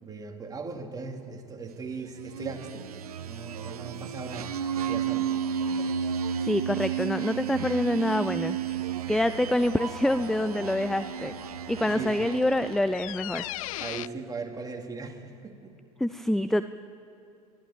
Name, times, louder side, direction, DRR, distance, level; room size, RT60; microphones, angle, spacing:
voice 1, 0.0-2.9 3.2-4.5 4.9-5.3 5.8-5.9 11.8-12.3 13.8-15.8, right 4 dB, 20° right, 3 dB, 2.7 m, -39 dB
sound 1, 2.1-13.0, right 8 dB, 80° right, 0.8 m, -33 dB
voice 2, 6.4-8.6 9.1-11.3 11.7-13.5 16.0-16.6, left 1 dB, ahead, 12 dB, 0.5 m, -26 dB
sound 2, 8.7-14.1, left 17 dB, 65° left, 0.4 m, -41 dB
22.0 x 15.5 x 9.0 m, 2.6 s
hypercardioid pair, 80°, 19 cm